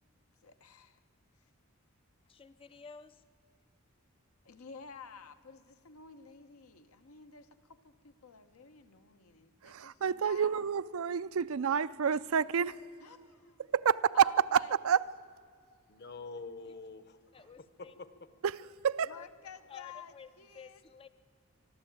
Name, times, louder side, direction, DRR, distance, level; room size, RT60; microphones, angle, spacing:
voice 1, 0.4-1.0 4.4-10.6 13.0-13.7 14.1-14.7 19.0-20.8, left 5 dB, 85° left, 1.0 m, -52 dB
voice 2, 2.3-3.2 17.3-17.9 19.1-19.3 19.7-20.3 20.5-21.1, left 6 dB, 25° left, 0.4 m, -52 dB
voice 3, 9.6-12.8 13.7-15.0 18.8-19.1, right 7 dB, 75° right, 0.4 m, -28 dB
voice 4, 15.9-18.3, left 3 dB, 50° left, 1.0 m, -47 dB
24.5 x 12.0 x 8.8 m
head